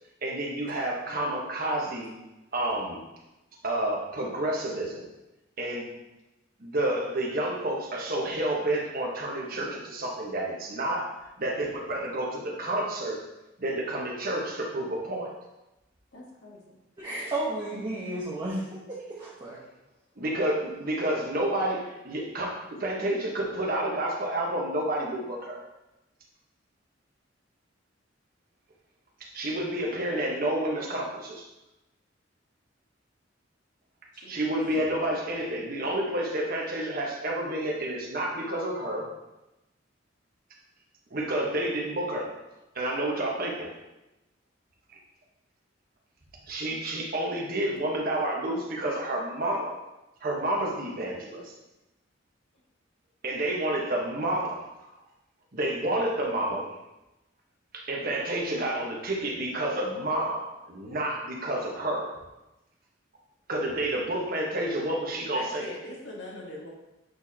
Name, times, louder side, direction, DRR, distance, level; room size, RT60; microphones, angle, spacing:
voice 1, 0.2-2.1 2.5-3.0 3.6-5.1 5.6-5.9 6.6-11.1 11.4-13.2 13.6-15.3 20.2-25.6 29.2-31.4 34.3-39.1 41.1-42.3 42.7-43.7 46.5-49.7 50.2-51.4 53.2-54.6 55.5-56.7 57.7-62.1 63.5-65.7, right 1 dB, 50° right, -1 dB, 1.2 m, -29 dB
voice 2, 16.1-16.8 34.1-34.5 65.3-66.7, left 1 dB, 75° left, -3 dB, 1.4 m, -42 dB
voice 3, 17.0-19.6, right 1 dB, 25° right, -7 dB, 1.1 m, -33 dB
8.0 x 4.4 x 2.8 m, 0.98 s
head